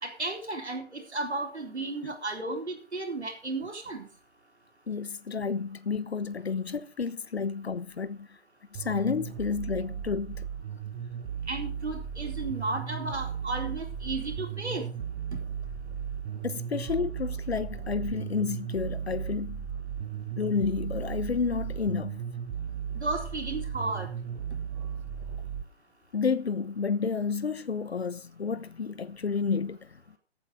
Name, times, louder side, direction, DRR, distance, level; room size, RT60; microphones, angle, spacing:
voice 1, 0.0-4.0 11.5-14.8 23.0-24.1, right 2 dB, 75° right, 3.9 m, -34 dB
voice 2, 4.9-8.3 8.7-10.5 16.4-19.6 20.4-22.2 26.1-29.9, left 5 dB, 65° left, 1.1 m, -30 dB
sound 1, 8.7-25.6, right 8 dB, 15° right, 1.0 m, -36 dB
14.5 x 8.4 x 4.9 m
figure-of-eight pair, 135°, 34 cm